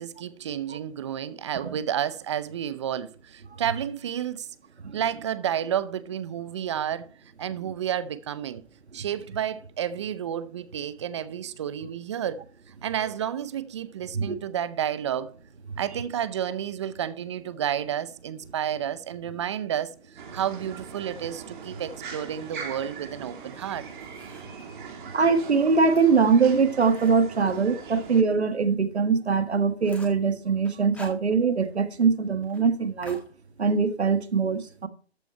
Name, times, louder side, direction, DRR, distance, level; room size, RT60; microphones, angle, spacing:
voice 1, 0.0-4.5 4.9-7.1 7.4-8.7 8.9-12.4 12.8-15.4 15.8-23.9, right 9 dB, 30° right, 0.6 m, -31 dB
sound 1, 20.2-28.2, right 5 dB, 50° right, 2.9 m, -41 dB
sound 2, 23.5-24.6 25.1-28.3 28.7-28.8 29.2-29.3 29.5-30.3 30.6-31.7 32.0-32.1 32.4-32.6 33.0-33.9, equal, 5° left, 1.8 m, -48 dB
voice 2, 25.1-33.2 33.6-34.9, right 5 dB, 85° right, 1.7 m, -22 dB
13.5 x 5.8 x 4.3 m
hypercardioid pair, 150°, 32 cm